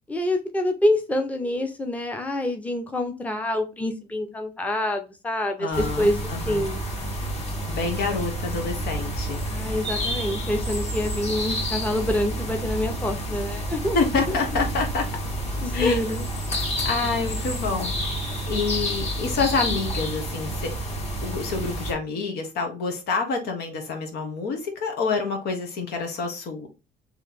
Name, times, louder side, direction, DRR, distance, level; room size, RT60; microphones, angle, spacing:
voice 1, 0.1-6.8 9.5-14.0 14.3-14.6 15.6-16.2, left 1 dB, 10° left, 0.7 m, -26 dB
voice 2, 5.6-6.7 7.7-9.8 13.9-15.1 15.7-16.0 16.8-20.7 21.2-26.7, left 4 dB, 75° left, 1.4 m, -27 dB
sound 1, 5.7-21.9, equal, 40° left, 1.8 m, -29 dB
3.3 x 3.1 x 4.0 m
cardioid pair, 110°, 17 cm